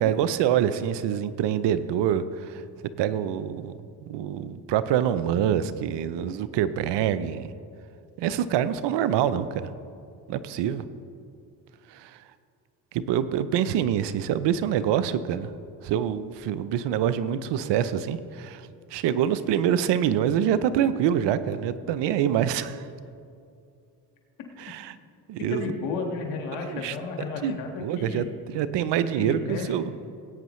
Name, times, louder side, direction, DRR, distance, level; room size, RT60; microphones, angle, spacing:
voice 1, 0.0-2.6 3.0-3.7 4.0-7.5 8.2-9.7 10.3-10.8 11.9-12.1 12.9-15.5 15.8-22.8 24.6-24.9 25.3-25.7 26.7-26.9 27.4-28.2 28.5-29.9, right 9 dB, 70° right, 14 dB, 0.7 m, -25 dB
voice 2, 25.5-28.3 29.1-29.7, left 4 dB, 90° left, 2 dB, 1.8 m, -33 dB
19.0 x 8.8 x 3.2 m, 2.5 s
supercardioid pair, 70°, 44 cm